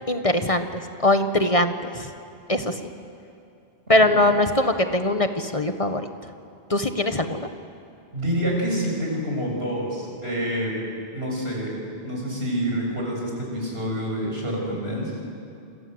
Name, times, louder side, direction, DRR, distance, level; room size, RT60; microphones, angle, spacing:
voice 1, 0.1-2.1 2.5-2.9 3.9-6.1 6.7-7.5, left 1 dB, 35° left, 7 dB, 1.3 m, -22 dB
voice 2, 3.9-4.2 8.1-10.7 11.1-11.8 12.0-15.1, equal, 80° right, -1 dB, 7.3 m, -27 dB
27.5 x 27.5 x 7.9 m, 2.5 s
omnidirectional pair, 1.0 m